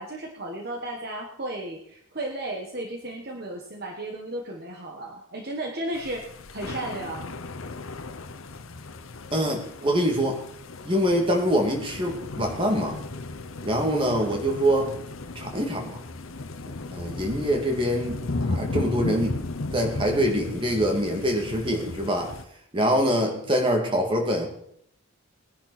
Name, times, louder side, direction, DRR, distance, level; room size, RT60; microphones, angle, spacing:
voice 1, 0.0-7.3, right 1 dB, 50° right, 1 dB, 1.5 m, -34 dB
sound 1, 5.9-22.4, left 2 dB, 80° left, 0.9 m, -35 dB
voice 2, 9.3-10.4 10.8-13.0 13.6-14.9 15.4-16.0 16.9-18.2 18.5-19.4 19.7-22.3 22.7-24.5, equal, 25° right, 1 dB, 2.4 m, -24 dB
20.0 x 10.5 x 4.2 m, 0.70 s
head